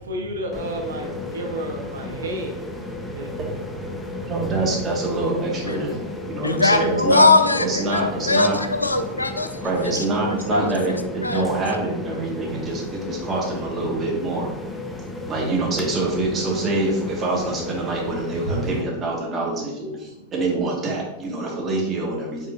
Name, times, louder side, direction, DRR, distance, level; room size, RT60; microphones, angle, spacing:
voice 1, 0.0-3.4 3.9-4.3 18.5-18.6, right 1 dB, 65° right, 3 dB, 0.6 m, -31 dB
sound 1, 0.5-18.8, left 2 dB, 5° left, 0.5 m, -34 dB
voice 2, 4.3-7.3 7.6-8.6 9.6-14.5 15.3-22.5, right 2 dB, 25° right, -2 dB, 1.3 m, -25 dB
voice 3, 6.4-9.5 9.8-9.9 10.3-10.7 11.2-11.5, left 3 dB, 80° left, 8 dB, 0.3 m, -20 dB
5.1 x 3.7 x 2.3 m, 0.92 s
figure-of-eight pair, 90°, 0 cm